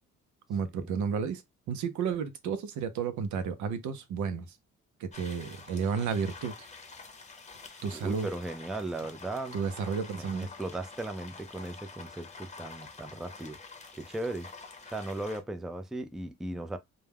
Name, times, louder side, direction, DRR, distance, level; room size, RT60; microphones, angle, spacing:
voice 1, 0.5-1.4 1.7-4.5 5.0-6.7 7.8-8.3 9.5-10.5, right 6 dB, 75° right, 0.6 m, -32 dB
sound 1, 5.1-15.4, left 4 dB, 25° left, 0.7 m, -48 dB
voice 2, 7.6-9.6 10.1-13.6 13.9-14.5 14.9-16.8, right 2 dB, ahead, 0.4 m, -37 dB
2.3 x 2.2 x 3.4 m
cardioid pair, 90°, 30 cm